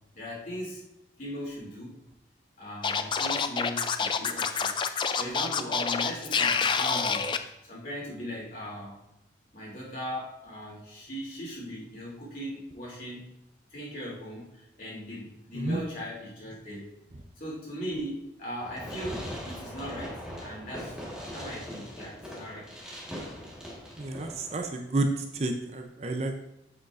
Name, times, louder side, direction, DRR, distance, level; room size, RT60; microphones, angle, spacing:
voice 1, 0.1-0.8 1.2-2.0 2.6-7.3 7.6-9.0 9.5-13.3 13.7-16.9 17.4-21.0 21.3-22.7, equal, 45° left, -5 dB, 2.9 m, -39 dB
Scratching (performance technique), 2.8-7.4, left 5 dB, 25° left, 0.3 m, -27 dB
Fireworks, 18.6-24.6, equal, 5° right, 1.5 m, -40 dB
voice 2, 24.0-26.4, right 2 dB, 35° right, 4 dB, 0.6 m, -30 dB
8.0 x 7.3 x 2.5 m, 0.83 s
head